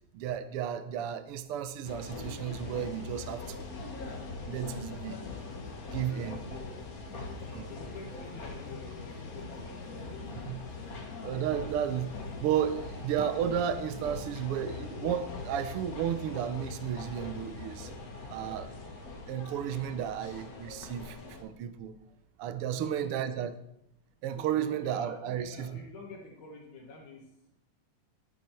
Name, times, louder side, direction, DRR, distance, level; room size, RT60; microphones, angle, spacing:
voice 1, 0.1-3.7 4.4-5.2 5.9-6.4 7.5-7.7 10.4-10.6 11.2-17.9 18.3-18.7 19.3-22.0 22.4-23.5 24.2-25.8, right 9 dB, 80° right, 10 dB, 1.3 m, -33 dB
sound 1, 1.8-21.4, left 3 dB, 45° left, 1.2 m, -42 dB
sound 2, 2.8-15.0 15.5-15.6, right 1 dB, 45° right, 3.2 m, -58 dB
voice 2, 6.1-6.8 7.7-10.2 22.6-23.1 24.4-27.3, left 3 dB, 75° left, -1 dB, 2.8 m, -48 dB
11.5 x 9.4 x 4.5 m, 0.81 s
omnidirectional pair, 3.5 m